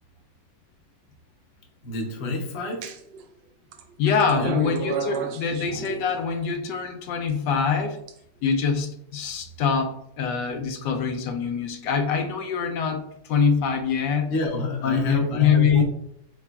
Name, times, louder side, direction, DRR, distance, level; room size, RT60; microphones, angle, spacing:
voice 1, 1.8-3.0 4.4-4.5 14.3-15.8, left 2 dB, 50° left, 2 dB, 0.9 m, -28 dB
sound 1, 2.8-3.2 3.7-6.4 7.3-8.1, right 6 dB, 75° right, 1.1 m, -33 dB
voice 2, 4.0-8.0 8.4-14.3 14.8-15.8, left 6 dB, 80° left, 4 dB, 1.2 m, -24 dB
4.9 x 4.2 x 2.3 m, 0.74 s
omnidirectional pair, 1.9 m